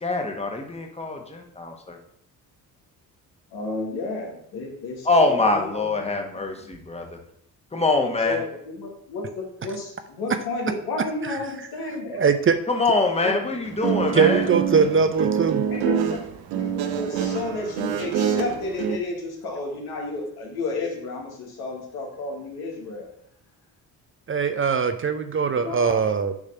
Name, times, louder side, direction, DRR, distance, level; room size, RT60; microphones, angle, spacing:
voice 1, 0.0-2.0 5.0-7.2 7.7-8.4 12.7-14.5, left 3 dB, 15° left, 3 dB, 1.3 m, -24 dB
voice 2, 3.5-6.2 8.2-12.3 13.2-13.4 13.7-14.1 15.7-16.2 16.5-23.1 25.6-26.0, left 3 dB, 80° left, 0 dB, 1.8 m, -32 dB
voice 3, 12.1-12.6 14.1-15.6 24.3-26.3, right 6 dB, 35° right, 9 dB, 0.6 m, -21 dB
Guitar, 13.6-19.0, right 8 dB, 90° right, 0.7 m, -26 dB
7.1 x 3.2 x 5.6 m, 0.70 s
supercardioid pair, 65°, 38 cm